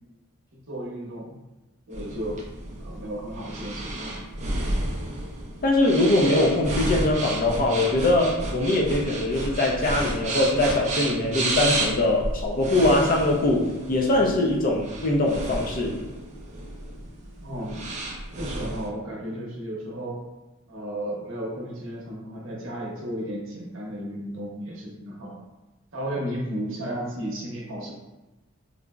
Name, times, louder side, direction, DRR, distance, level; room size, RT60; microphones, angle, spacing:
voice 1, 0.7-1.3 1.9-2.4 2.8-4.3 17.4-17.9 18.4-20.2 20.7-25.4 25.9-27.9, right 1 dB, 65° right, -4 dB, 0.7 m, -34 dB
sound 1, 1.9-18.9, right 1 dB, 35° right, 0.4 m, -32 dB
voice 2, 5.6-16.0, left 2 dB, 40° left, 0 dB, 0.4 m, -22 dB
3.7 x 2.0 x 2.3 m, 1.1 s
head